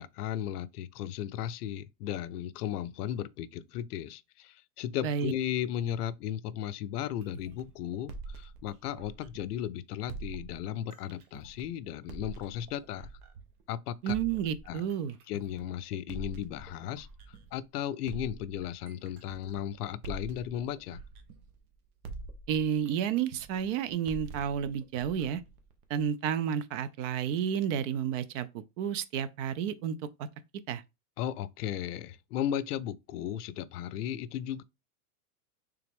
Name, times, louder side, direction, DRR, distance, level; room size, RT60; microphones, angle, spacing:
voice 1, 0.0-13.1 13.7-14.1 14.7-14.8 15.3-21.0 31.2-34.6, left 10 dB, 90° left, 0.5 m, -35 dB
sound 1, 7.2-9.6 10.1-13.6 14.1-17.6 18.0-21.7 22.0-26.1, right 3 dB, 75° right, 1.1 m, -46 dB
voice 2, 14.0-15.2 22.5-25.4 25.9-30.0 30.7-30.8, right 8 dB, 55° right, 0.6 m, -31 dB
3.4 x 3.4 x 3.4 m
supercardioid pair, 130°, 45 cm